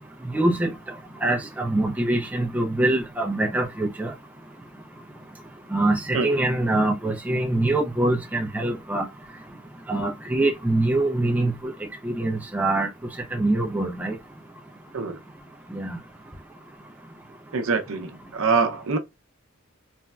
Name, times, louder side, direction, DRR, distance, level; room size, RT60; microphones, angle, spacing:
voice 1, 0.3-0.7 1.2-4.1 5.7-9.1 9.9-11.7 12.0-12.9 13.3-14.1 15.7-16.0, right 2 dB, 10° right, 0.4 m, -24 dB
voice 2, 17.5-19.0, right 4 dB, 80° right, 0.6 m, -24 dB
3.3 x 2.0 x 2.2 m
head